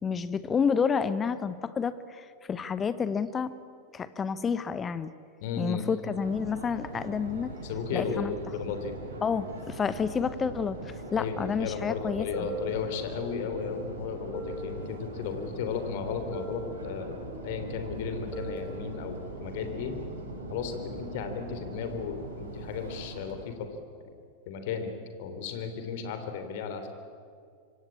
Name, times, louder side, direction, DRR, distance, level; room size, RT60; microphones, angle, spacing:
voice 1, 0.0-3.5 3.9-5.1 5.6-7.5 7.9-8.3 9.2-12.5, left 6 dB, 20° left, 15 dB, 0.9 m, -29 dB
voice 2, 5.4-5.8 7.6-8.2 8.5-8.9 11.2-11.3 11.6-19.9 20.5-23.5 24.4-24.9 25.2-26.9, left 6 dB, 50° left, 7 dB, 3.5 m, -34 dB
Subway metro underground, 6.0-23.3, right 2 dB, 65° right, 7.1 m, -41 dB
sound 1, 12.3-13.5 14.3-15.5 16.3-17.5 18.3-19.5, right 2 dB, 5° right, 2.1 m, -43 dB
26.5 x 24.0 x 8.7 m, 2.2 s
figure-of-eight pair, 90°, 0 cm